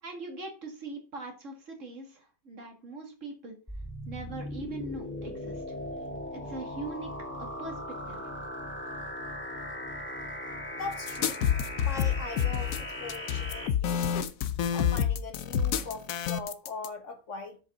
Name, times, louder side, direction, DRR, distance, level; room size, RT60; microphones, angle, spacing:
voice 1, 0.0-3.6 4.1-5.6 6.3-8.2, right 2 dB, 55° right, 2.3 m, -42 dB
sound 1, 3.7-13.7, left 1 dB, 10° left, 1.7 m, -38 dB
voice 2, 10.7-11.4 11.8-14.3 14.7-17.6, left 3 dB, 55° left, 1.7 m, -41 dB
sound 2, 11.1-16.9, left 9 dB, 75° left, 1.1 m, -28 dB
7.3 x 5.3 x 5.4 m
omnidirectional pair, 1.5 m